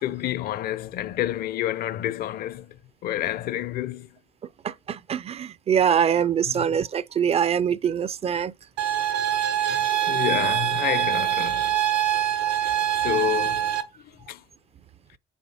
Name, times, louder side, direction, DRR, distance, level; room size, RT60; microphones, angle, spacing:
voice 1, 0.0-2.8 3.0-4.1 6.5-6.7 9.6-11.8 12.6-13.7 14.3-14.4, left 13 dB, 65° left, 0.7 m, -29 dB
voice 2, 4.6-8.5 9.3-9.6, right 8 dB, 35° right, 0.4 m, -24 dB
sound 1, 8.8-13.8, right 11 dB, 85° right, 1.3 m, -24 dB
7.1 x 5.0 x 5.6 m
cardioid pair, 110°, 17 cm